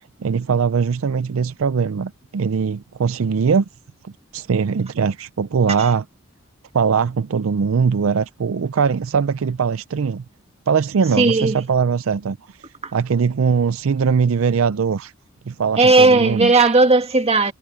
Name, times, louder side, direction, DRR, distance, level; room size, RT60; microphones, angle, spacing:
voice 1, 0.2-3.7 4.0-6.0 6.7-10.2 10.7-12.4 12.9-15.1 15.5-16.5, right 6 dB, 75° right, 0.5 m, -21 dB
voice 2, 11.2-11.6 12.8-12.9 15.8-17.5, right 3 dB, 30° right, 1.8 m, -15 dB
head